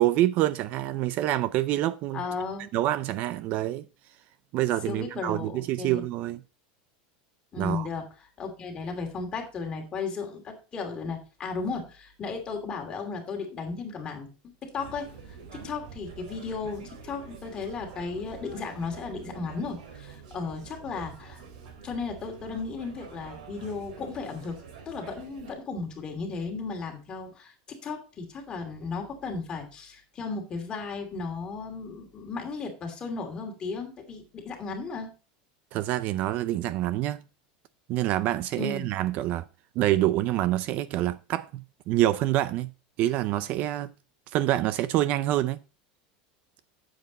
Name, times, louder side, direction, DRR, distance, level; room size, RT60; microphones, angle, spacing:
voice 1, 0.0-2.2 2.7-3.8 4.5-6.4 7.5-7.9 35.7-37.2 37.9-39.4 39.8-42.7 43.0-43.9 44.3-45.6, right 14 dB, 40° right, 0.4 m, -26 dB
voice 2, 2.1-2.7 4.9-6.0 7.5-8.0 8.4-14.3 14.6-21.4 21.8-24.6 24.9-35.1 38.6-38.9, left 4 dB, 20° left, 2.7 m, -35 dB
sound 1, 14.8-25.5, right 6 dB, 80° right, 3.4 m, -46 dB
9.4 x 7.8 x 3.9 m
supercardioid pair, 165°, 4 cm